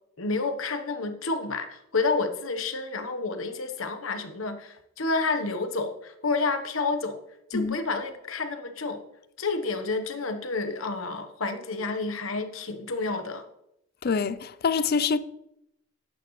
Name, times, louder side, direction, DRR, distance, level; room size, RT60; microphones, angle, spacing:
voice 1, 0.2-7.2 7.5-9.0 9.4-13.4, left 3 dB, 75° left, 1.1 m, -29 dB
voice 2, 14.0-15.2, left 5 dB, 50° left, 0.5 m, -25 dB
11.5 x 8.8 x 3.2 m
head